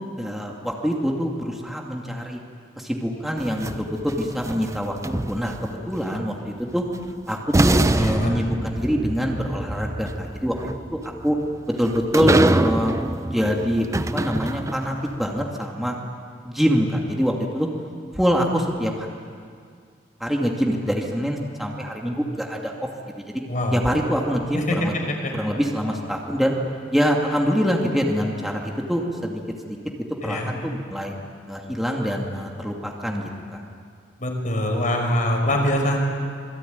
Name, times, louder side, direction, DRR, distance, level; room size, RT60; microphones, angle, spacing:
voice 1, 0.2-2.4 2.8-5.0 5.3-6.8 7.3-10.5 10.9-11.4 11.8-13.0 13.2-13.9 14.1-16.0 16.4-17.7 18.1-19.1 20.2-22.7 23.2-23.3 23.7-24.9 25.3-26.5 26.9-29.4 29.7-31.1 31.5-33.6, equal, ahead, -1 dB, 2.4 m, -25 dB
sound 1, 3.4-5.7 7.0-7.1 7.5-15.0, right 1 dB, 15° right, 0.6 m, -24 dB
voice 2, 8.0-8.3 23.5-23.8 24.5-24.8 25.1-25.2 30.2-30.5 34.2-36.0, left 1 dB, 45° left, 2 dB, 5.3 m, -23 dB
26.5 x 22.0 x 9.5 m, 2.2 s
head